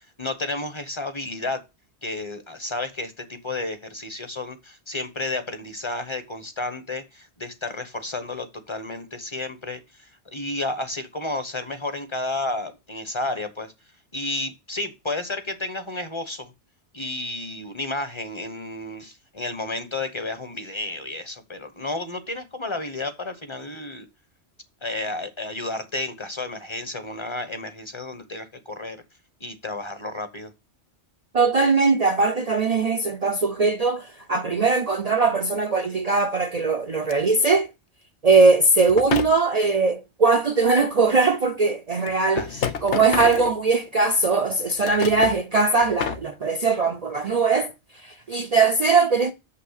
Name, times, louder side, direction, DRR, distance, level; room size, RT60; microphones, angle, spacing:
voice 1, 0.0-1.6 2.0-13.7 14.1-16.5 16.9-24.1 24.8-29.0 29.4-30.5 42.3-42.8, left 2 dB, 25° left, 1.0 m, -32 dB
voice 2, 31.3-37.7 38.2-42.5 42.8-47.7 48.0-49.3, right 4 dB, 45° right, 0.6 m, -20 dB
sound 1, 37.1-37.2 38.9-39.4 41.1-41.2 42.1-44.0 44.6-45.4 45.8-46.3, left 8 dB, 85° left, 1.1 m, -29 dB
6.9 x 5.8 x 6.5 m
omnidirectional pair, 1.1 m